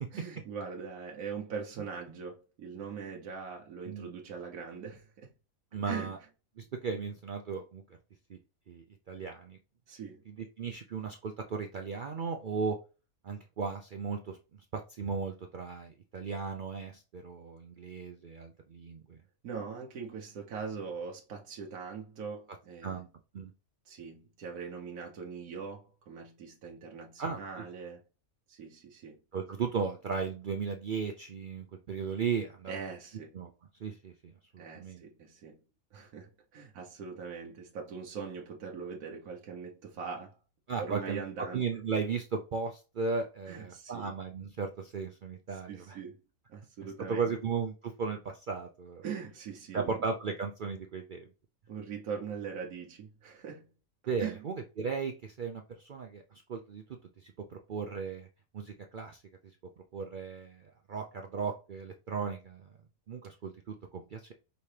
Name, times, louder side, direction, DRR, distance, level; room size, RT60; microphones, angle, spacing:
voice 1, 0.1-5.3 5.8-6.2 9.9-10.2 19.4-23.0 23.8-28.0 28.5-29.2 32.7-33.4 34.6-35.6 35.9-40.4 40.8-41.6 43.5-44.1 45.5-46.2 46.5-47.3 49.0-50.0 51.7-53.7 54.2-54.4, right 6 dB, 85° right, 1.3 m, -41 dB
voice 2, 5.7-6.2 6.6-7.8 8.3-8.4 8.7-9.6 10.3-12.8 13.2-14.4 14.7-19.2 22.8-23.1 23.3-23.5 27.2-27.4 29.3-32.7 33.3-33.5 33.8-35.0 40.7-41.2 41.5-46.0 47.1-49.0 49.7-51.3 54.1-56.2 56.5-56.8 57.2-58.3 58.5-59.2 59.9-62.7 63.1-64.3, right 5 dB, 70° right, 0.4 m, -36 dB
5.5 x 2.8 x 3.2 m
omnidirectional pair, 1.5 m